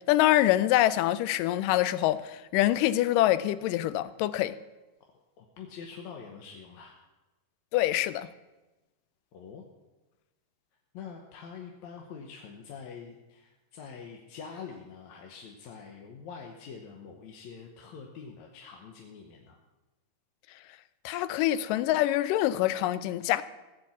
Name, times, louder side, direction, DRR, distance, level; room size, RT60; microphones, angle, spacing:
voice 1, 0.1-4.5 7.7-8.3 21.1-23.4, left 14 dB, 90° left, 2.2 m, -25 dB
voice 2, 5.0-7.0 9.3-9.6 10.9-19.6, left 6 dB, 70° left, 2.2 m, -45 dB
16.5 x 7.8 x 7.2 m
omnidirectional pair, 3.7 m